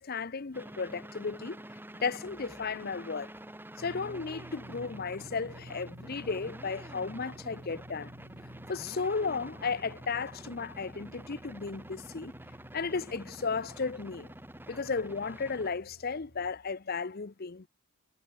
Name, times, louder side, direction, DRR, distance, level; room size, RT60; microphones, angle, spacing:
voice 1, 0.0-1.6 1.9-3.3 3.8-8.1 8.7-12.3 12.7-14.3 14.7-17.7, left 4 dB, 45° left, 0.7 m, -34 dB
sound 1, 0.5-15.7, right 1 dB, 10° right, 3.0 m, -48 dB
sound 2, 3.8-16.5, right 1 dB, 55° right, 2.7 m, -52 dB
head